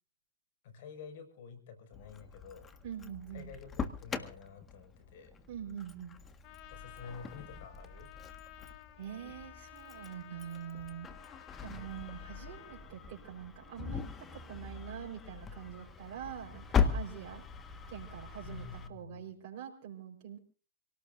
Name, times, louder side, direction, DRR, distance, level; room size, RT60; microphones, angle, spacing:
voice 1, 0.6-2.7 3.3-5.3 6.7-8.1 18.4-19.2, left 5 dB, 60° left, 9 dB, 5.8 m, -49 dB
Engine starting, 1.9-18.9, left 6 dB, 20° left, 1.6 m, -40 dB
voice 2, 2.8-3.5 5.5-6.2 9.0-11.1 11.6-17.4 17.9-20.4, right 9 dB, 50° right, -2 dB, 4.4 m, -45 dB
Trumpet, 6.4-12.9, left 14 dB, 45° left, 1.6 m, -54 dB
27.0 x 18.0 x 2.6 m, 0.37 s
hypercardioid pair, 125°, 0 cm